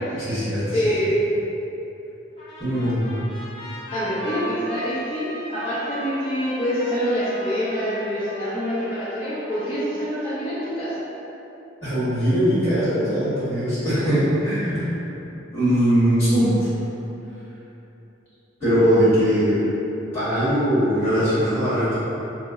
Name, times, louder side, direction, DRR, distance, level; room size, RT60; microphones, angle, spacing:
voice 1, 0.1-0.9 2.6-3.2 11.8-14.8 15.5-16.7 18.6-19.7 20.1-22.0, equal, 15° left, -15 dB, 1.4 m, -20 dB
voice 2, 0.7-1.1 3.9-10.9, equal, 30° left, -12 dB, 0.6 m, -26 dB
Trumpet, 2.4-10.0, equal, 30° right, 1.4 m, -39 dB
2.9 x 2.0 x 3.5 m, 3.0 s
head